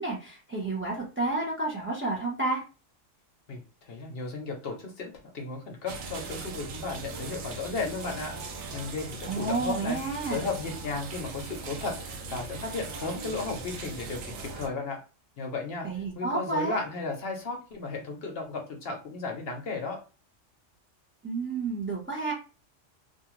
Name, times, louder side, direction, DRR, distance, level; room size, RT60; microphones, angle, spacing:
voice 1, 0.0-2.6 9.2-10.4 15.8-16.8 21.2-22.3, right 3 dB, 15° right, -2 dB, 0.6 m, -30 dB
voice 2, 3.5-8.3 8.7-10.0 10.3-15.0 15.4-15.9 16.2-20.0, left 3 dB, 60° left, 2 dB, 0.7 m, -34 dB
sound 1, 5.9-14.7, right 3 dB, 70° right, 0.8 m, -39 dB
2.5 x 2.4 x 2.9 m, 0.34 s
omnidirectional pair, 1.3 m